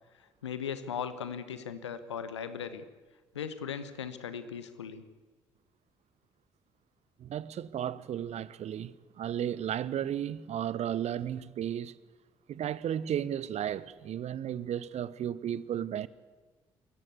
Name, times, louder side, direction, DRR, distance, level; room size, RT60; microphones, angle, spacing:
voice 1, 0.4-2.8 3.3-5.0, left 7 dB, 85° left, 1.0 m, -38 dB
voice 2, 7.2-12.0 12.5-16.1, right 10 dB, 50° right, 0.9 m, -34 dB
26.0 x 15.5 x 8.3 m
figure-of-eight pair, 45°, 14 cm